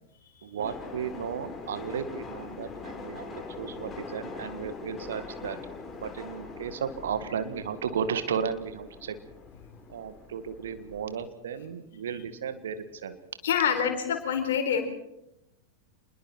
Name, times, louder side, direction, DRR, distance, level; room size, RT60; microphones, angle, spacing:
voice 1, 0.4-5.6 5.9-9.1 9.9-13.2, right 7 dB, 65° right, 10 dB, 1.9 m, -34 dB
sound 1, 0.6-11.2, left 4 dB, 20° left, 3.9 m, -43 dB
voice 2, 13.4-14.8, left 8 dB, 60° left, 6 dB, 4.2 m, -26 dB
27.5 x 21.5 x 4.5 m, 0.84 s
figure-of-eight pair, 90°, 0 cm